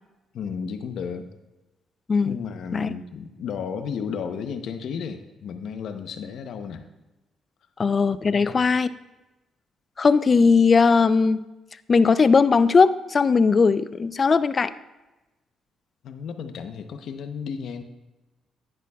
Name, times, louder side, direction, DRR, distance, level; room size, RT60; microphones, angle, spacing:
voice 1, 0.3-1.3 2.2-6.9 8.3-8.6 16.0-17.8, left 6 dB, 70° left, 8 dB, 0.8 m, -33 dB
voice 2, 7.8-8.9 10.0-11.4 11.9-14.7, left 5 dB, 35° left, 15 dB, 0.4 m, -19 dB
11.0 x 10.5 x 2.3 m, 1.1 s
cardioid pair, 90°, 0 cm